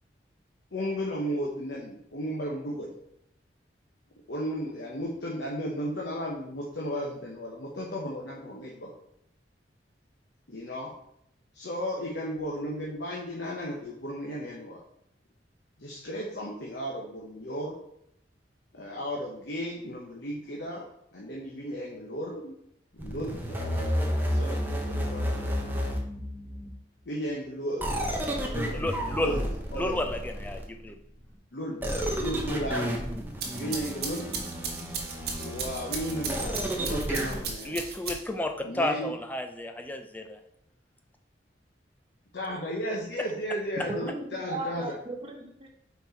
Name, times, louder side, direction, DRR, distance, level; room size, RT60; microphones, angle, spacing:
voice 1, 0.7-2.9 4.3-8.9 10.5-10.9 11.5-14.8 15.8-17.7 18.7-22.5 22.9-25.7 27.1-30.2 31.5-32.9 33.5-34.3 35.4-37.8 38.6-39.1 42.3-44.8, equal, 75° left, -3 dB, 1.1 m, -35 dB
sound 1, 23.0-26.7 27.8-30.9 31.8-37.4, equal, 10° right, 0.9 m, -31 dB
voice 2, 28.7-29.4 29.7-30.9 37.1-37.2 37.6-40.4, left 1 dB, 10° left, 5 dB, 0.5 m, -32 dB
sound 2, 33.2-38.5, right 5 dB, 60° right, 1.3 m, -36 dB
voice 3, 43.9-45.7, right 2 dB, 30° right, 2 dB, 1.0 m, -36 dB
5.6 x 4.4 x 4.5 m, 0.75 s
head